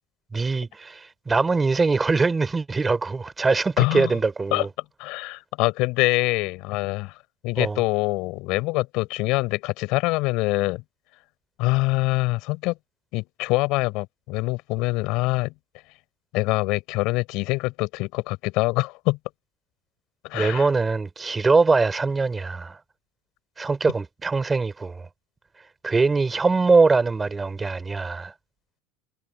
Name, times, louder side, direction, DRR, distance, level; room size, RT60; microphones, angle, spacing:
voice 1, 0.3-4.7 7.6-7.8 20.3-22.8 23.6-25.1 25.8-28.3, right 4 dB, 15° right, 4.1 m, -22 dB
voice 2, 3.8-4.1 4.5-4.7 5.0-7.1 7.4-10.8 11.6-12.8 13.1-15.5 16.3-19.2 20.2-20.7, left 23 dB, 55° left, 6.1 m, -24 dB
supercardioid pair, 135°, 0 cm